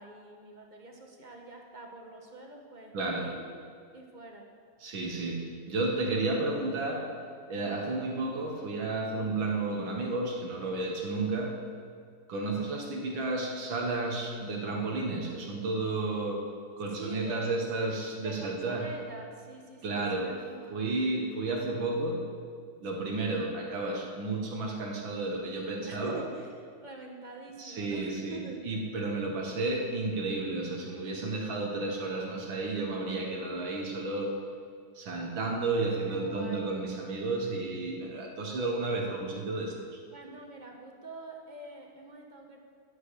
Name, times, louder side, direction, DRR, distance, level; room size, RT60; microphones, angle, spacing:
voice 1, 0.0-2.9 3.2-3.6 3.9-4.5 6.1-6.3 7.5-7.8 10.9-11.1 17.0-17.6 18.2-20.8 22.9-23.2 25.9-26.5 26.8-28.6 36.1-36.7 40.1-42.6, right 2 dB, 25° right, 1 dB, 1.5 m, -46 dB
voice 2, 2.9-3.3 4.8-7.2 7.5-11.6 12.3-16.5 16.8-18.9 19.8-20.4 20.7-22.3 22.8-26.2 27.6-34.4 35.0-40.0, right 2 dB, 80° right, 0 dB, 2.3 m, -32 dB
11.0 x 10.0 x 8.5 m, 2.1 s
omnidirectional pair, 2.1 m